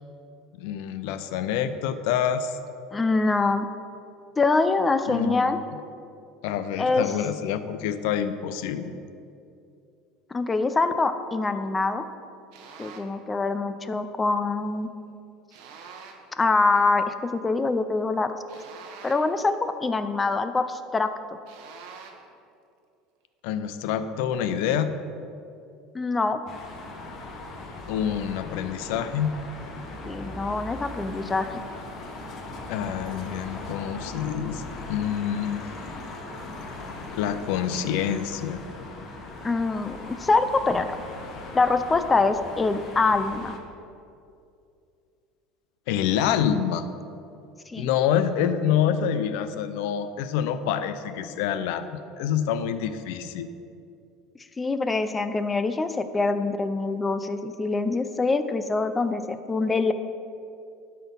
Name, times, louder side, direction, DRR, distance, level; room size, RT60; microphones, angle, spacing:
voice 1, 0.6-2.6 5.1-5.6 6.4-8.9 23.4-24.9 27.9-29.4 32.7-34.6 34.9-35.7 37.1-38.6 45.9-46.9 47.8-53.5, left 9 dB, 75° left, 11 dB, 0.5 m, -27 dB
voice 2, 2.9-3.7 4.4-5.6 6.8-7.1 10.3-12.0 12.8-14.9 16.4-18.3 19.0-21.1 25.9-26.4 30.1-31.6 39.4-40.9 41.5-43.6 47.7-47.9 54.6-59.9, left 3 dB, 15° left, 10 dB, 0.4 m, -24 dB
sound 1, 12.5-13.2 15.5-16.4 18.5-19.5 21.5-22.3, right 5 dB, 65° right, 0.9 m, -45 dB
sound 2, 26.5-43.6, left 2 dB, 40° left, 1.0 m, -39 dB
12.0 x 4.4 x 5.3 m, 2.5 s
cardioid pair, 150°, 0 cm